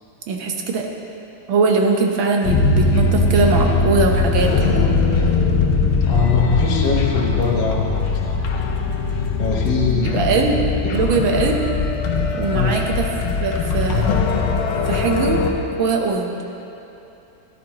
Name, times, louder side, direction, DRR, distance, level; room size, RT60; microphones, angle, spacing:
voice 1, 0.3-0.9 1.5-4.8 10.0-10.6 10.9-11.6 12.3-13.1 13.4-14.1 14.9-15.4 15.8-16.4, right 4 dB, 70° right, 1 dB, 1.7 m, -20 dB
sound 1, 2.4-15.5, left 3 dB, 90° left, 1.7 m, -20 dB
voice 2, 6.1-8.4 9.4-10.6 10.8-10.9 12.5-12.8, left 4 dB, 65° left, -3 dB, 1.7 m, -22 dB
17.0 x 10.5 x 3.0 m, 2.8 s
omnidirectional pair, 2.3 m